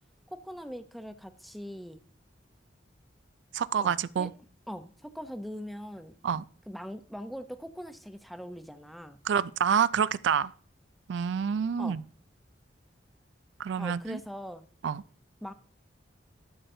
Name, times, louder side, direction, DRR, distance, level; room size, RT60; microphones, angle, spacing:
voice 1, 0.3-2.0 3.8-4.3 4.7-6.1 6.7-9.2 11.8-12.0 13.8-14.6 15.4-15.5, equal, ahead, 0.6 m, -41 dB
voice 2, 3.5-4.3 6.2-6.4 9.2-10.5 11.1-12.0 13.6-14.2 14.8-15.0, right 7 dB, 75° right, 0.3 m, -27 dB
12.0 x 7.8 x 2.7 m
head